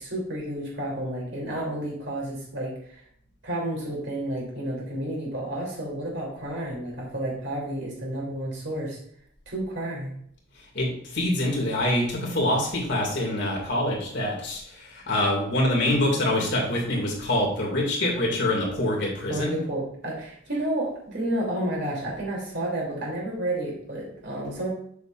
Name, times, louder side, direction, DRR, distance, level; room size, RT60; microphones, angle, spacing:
voice 1, 0.0-3.0 3.4-9.0 9.5-10.1 19.3-24.7, right 1 dB, 60° right, -3 dB, 3.1 m, -31 dB
voice 2, 10.7-19.6, left 1 dB, 55° left, -2 dB, 2.4 m, -25 dB
7.9 x 6.8 x 2.5 m, 0.67 s
head